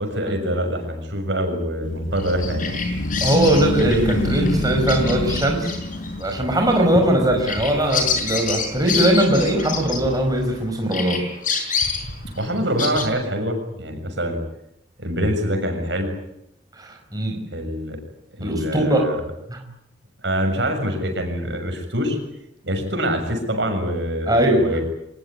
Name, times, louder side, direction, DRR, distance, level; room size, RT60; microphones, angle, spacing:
voice 1, 0.0-2.7 12.4-14.4 15.0-16.1 17.5-18.0 18.4-19.2 20.2-22.2 22.6-24.8, equal, 70° right, 5 dB, 6.9 m, -25 dB
sound 1, 1.8-10.7, left 1 dB, 85° left, 1.8 m, -28 dB
Bird vocalization bird call bird song, 2.2-10.6 10.9-13.1, left 5 dB, 45° left, 6.3 m, -28 dB
voice 2, 3.2-5.7 6.2-11.2 16.8-17.4 18.4-19.1 19.5-19.6 24.3-24.7, right 1 dB, 20° right, 2 dB, 5.1 m, -20 dB
24.5 x 20.5 x 9.7 m, 0.80 s
head